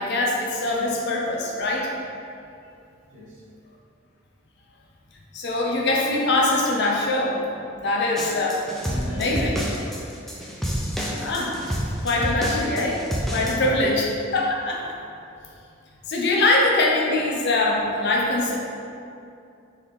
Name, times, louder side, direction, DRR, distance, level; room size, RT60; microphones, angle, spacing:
voice 1, 0.0-1.9 5.3-7.4 7.8-8.6 9.1-9.5 11.2-11.6 12.0-13.0 13.3-14.1 14.3-14.9 16.1-18.6, left 2 dB, 60° left, -1 dB, 0.6 m, -23 dB
voice 2, 3.1-3.4 8.8-9.6 10.3-10.7 13.7-14.0 15.2-15.3, right 1 dB, 75° right, -6 dB, 1.0 m, -39 dB
sound 1, 8.2-13.7, equal, ahead, 0.4 m, -29 dB
3.9 x 2.7 x 3.4 m, 2.5 s
head